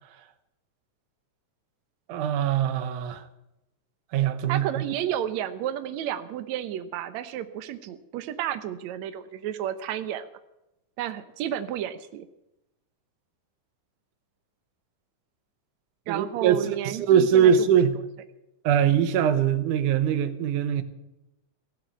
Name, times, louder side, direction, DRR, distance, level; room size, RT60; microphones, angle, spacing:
voice 1, 2.1-3.2 4.1-4.7 16.1-16.6 16.8-17.9 18.6-20.8, right 8 dB, 90° right, 2.5 m, -22 dB
voice 2, 4.5-10.3 11.0-12.3 16.1-17.8, right 11 dB, 70° right, 2.1 m, -32 dB
16.5 x 9.4 x 9.0 m
omnidirectional pair, 3.5 m